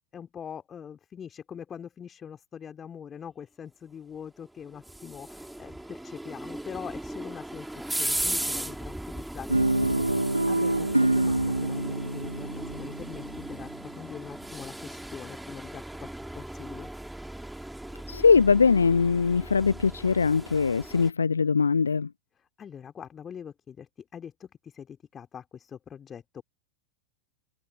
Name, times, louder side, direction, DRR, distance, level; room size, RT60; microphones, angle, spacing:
voice 1, 0.1-16.9 22.3-26.4, left 8 dB, 20° left, 3.0 m, -43 dB
sound 1, 4.4-21.1, right 1 dB, 5° right, 2.8 m, -37 dB
Guitar, 9.5-13.8, right 2 dB, 85° right, 1.3 m, -26 dB
voice 2, 18.1-22.1, left 5 dB, 75° left, 0.8 m, -22 dB
open air
figure-of-eight pair, 90°, 0 cm